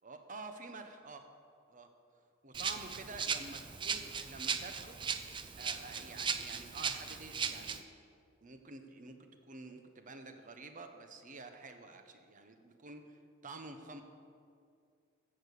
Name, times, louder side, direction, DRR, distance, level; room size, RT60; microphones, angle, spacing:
voice 1, 0.0-1.3 1.7-1.9 2.4-5.0 5.6-7.9 8.4-13.2 13.4-14.0, right 3 dB, 40° right, 6 dB, 1.0 m, -49 dB
Rattle (instrument), 2.5-7.8, right 6 dB, 25° right, 0.5 m, -38 dB
14.5 x 6.8 x 6.6 m, 2.3 s
head